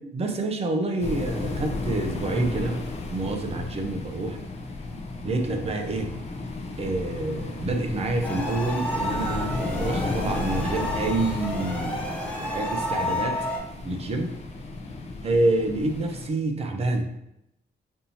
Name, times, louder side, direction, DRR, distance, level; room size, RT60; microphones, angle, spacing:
voice 1, 0.1-4.4 5.2-6.1 6.8-12.0 12.4-13.5 13.8-14.3 15.2-17.1, right 2 dB, 35° right, 4 dB, 0.6 m, -27 dB
sound 1, 1.0-16.3, left 3 dB, 35° left, 0.6 m, -33 dB
sound 2, 8.2-13.6, left 1 dB, 5° left, 0.9 m, -31 dB
5.3 x 2.7 x 2.7 m, 0.82 s
cardioid pair, 135°, 18 cm